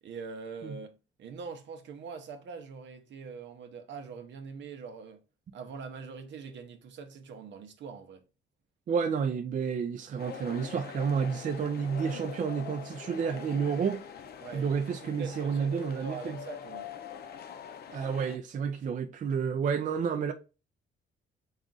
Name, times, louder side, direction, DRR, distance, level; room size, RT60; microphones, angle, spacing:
voice 1, 0.0-0.9 1.2-5.2 5.5-8.2 14.4-14.7 15.0-16.9 19.8-19.9, right 5 dB, 65° right, 0.7 m, -43 dB
voice 2, 8.9-14.0 14.5-16.4 17.9-20.3, right 6 dB, 40° right, 0.4 m, -30 dB
sound 1, 10.2-18.4, left 8 dB, 50° left, 0.5 m, -44 dB
3.7 x 2.4 x 3.8 m
cardioid pair, 90°, 20 cm